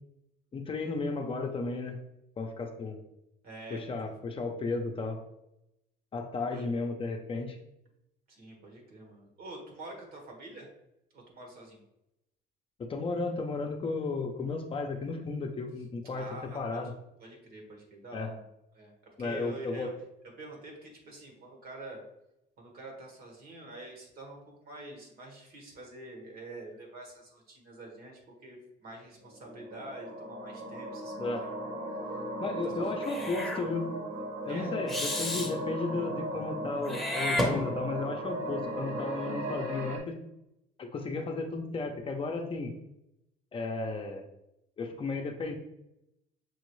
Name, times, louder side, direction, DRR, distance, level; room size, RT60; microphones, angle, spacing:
voice 1, 0.5-2.0 2.4-3.0 3.7-5.2 6.1-7.6 12.8-16.3 16.5-16.9 18.1-18.3 19.2-19.9 31.2-31.4 32.4-33.9 34.5-40.2 40.8-42.7 43.5-44.2 44.8-45.5, left 3 dB, 30° left, 3 dB, 0.6 m, -34 dB
voice 2, 3.4-3.8 6.5-6.6 8.3-10.7 11.1-11.8 16.1-16.8 17.2-18.4 18.7-18.9 19.2-19.9 20.4-22.0 22.6-31.6 32.6-32.9 34.5-34.7, right 2 dB, 65° right, 1 dB, 1.6 m, -46 dB
sound 1, 29.2-40.0, right 1 dB, 45° right, 1.2 m, -37 dB
Meow / Hiss, 33.0-33.6 34.9-35.5 36.8-38.1, left 1 dB, ahead, 0.9 m, -32 dB
6.1 x 2.5 x 3.1 m, 0.84 s
cardioid pair, 110°, 17 cm